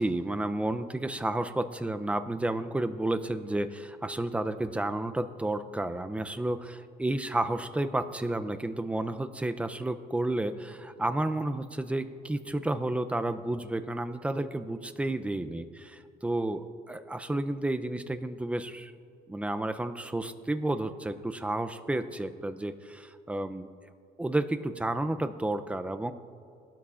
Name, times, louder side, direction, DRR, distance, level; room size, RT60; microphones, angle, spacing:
voice 1, 0.0-18.9 19.3-23.7 24.2-26.1, right 1 dB, 5° right, 10 dB, 0.5 m, -31 dB
19.5 x 12.5 x 2.5 m, 2.5 s
cardioid pair, 110°, 17 cm